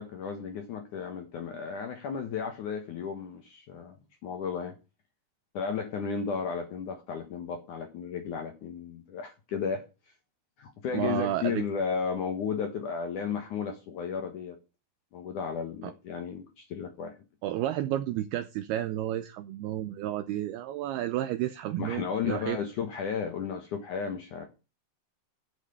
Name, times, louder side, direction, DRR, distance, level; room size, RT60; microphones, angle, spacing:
voice 1, 0.0-4.7 5.5-9.8 10.6-14.6 15.1-17.1 21.8-24.5, left 6 dB, 65° left, 5 dB, 2.1 m, -34 dB
voice 2, 10.9-11.7 15.8-15.9 17.4-22.6, right 13 dB, 80° right, 10 dB, 2.3 m, -31 dB
8.2 x 7.5 x 6.9 m, 0.30 s
omnidirectional pair, 5.2 m